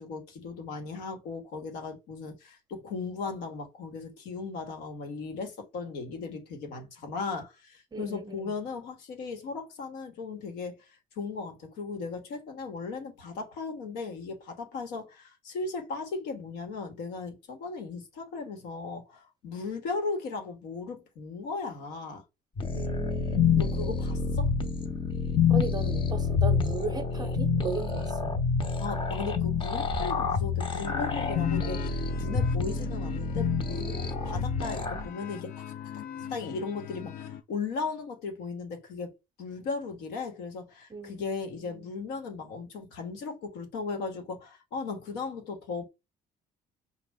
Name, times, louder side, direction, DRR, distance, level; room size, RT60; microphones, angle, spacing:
voice 1, 0.0-22.2 23.6-24.5 28.8-34.0 34.2-35.5 35.9-39.1 39.4-45.9, left 4 dB, 85° left, 1.1 m, -37 dB
voice 2, 7.9-8.4 22.7-23.9 25.5-28.4 40.9-41.9, right 4 dB, 25° right, 0.7 m, -36 dB
sound 1, 22.6-35.1, left 5 dB, 30° left, 0.7 m, -28 dB
sound 2, 30.8-37.4, left 9 dB, 60° left, 0.5 m, -40 dB
5.1 x 2.2 x 3.5 m
cardioid pair, 110°, 17 cm